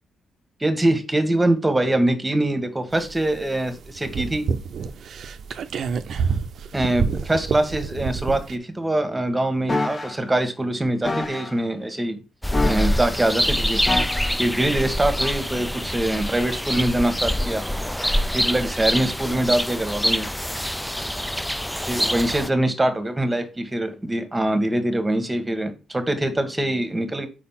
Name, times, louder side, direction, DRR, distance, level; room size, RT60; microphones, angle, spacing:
voice 1, 0.6-4.5 6.7-12.2 12.6-13.8 14.4-17.6 18.3-20.3 21.9-27.3, right 1 dB, 15° right, 9 dB, 1.3 m, -23 dB
sound 1, 2.9-8.6, right 6 dB, 65° right, 0.6 m, -28 dB
sound 2, 9.7-10.1 11.0-11.5 12.5-13.1 13.9-14.4 15.2-15.4, left 2 dB, 30° left, 1.1 m, -27 dB
sound 3, 12.4-22.5, equal, 5° left, 0.3 m, -25 dB
5.1 x 4.3 x 5.6 m, 0.33 s
cardioid pair, 90°, 0 cm